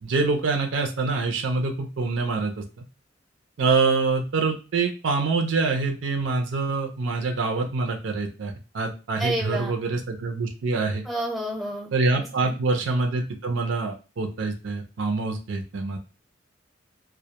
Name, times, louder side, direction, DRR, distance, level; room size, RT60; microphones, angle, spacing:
voice 1, 0.0-2.6 3.6-11.0 11.9-16.0, right 3 dB, 70° right, 4 dB, 0.4 m, -25 dB
voice 2, 9.2-9.7 11.0-11.9 12.4-12.6, right 1 dB, ahead, -3 dB, 0.7 m, -29 dB
2.1 x 2.1 x 2.8 m, 0.32 s
head